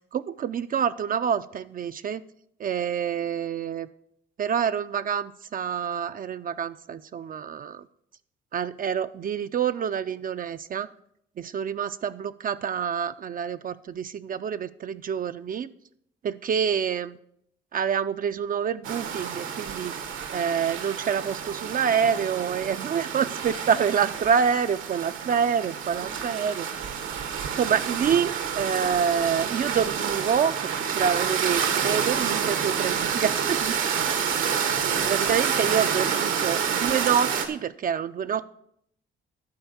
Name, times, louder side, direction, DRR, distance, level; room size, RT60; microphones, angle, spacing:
voice 1, 0.1-2.2 2.6-3.9 4.4-7.8 8.5-10.9 11.4-15.7 16.2-17.2 17.7-19.9 20.3-27.0 27.5-33.8 35.1-38.4, right 7 dB, 45° right, 11 dB, 0.4 m, -27 dB
sound 1, 18.8-37.5, right 7 dB, 85° right, 1.3 m, -28 dB
11.5 x 4.4 x 7.1 m, 0.71 s
cardioid pair, 90°, 20 cm